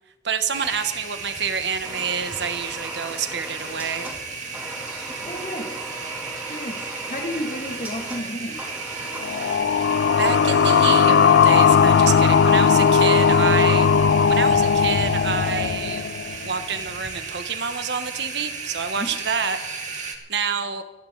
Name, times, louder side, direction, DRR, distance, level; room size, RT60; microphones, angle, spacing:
voice 1, 0.2-4.1 9.5-9.6 10.2-13.9 14.3-16.1 16.4-19.6 19.9-20.8, right 6 dB, 65° right, 9 dB, 1.2 m, -28 dB
sound 1, 0.5-20.2, right 4 dB, 45° right, 1.9 m, -35 dB
sound 2, 1.8-9.6, right 1 dB, 10° right, 3.0 m, -38 dB
voice 2, 5.3-5.7 6.5-6.8 7.1-8.6 19.0-19.1, equal, 45° left, 1 dB, 2.5 m, -31 dB
sound 3, 9.2-16.6, left 6 dB, 70° left, 0.4 m, -17 dB
28.0 x 10.5 x 4.0 m, 1.1 s
head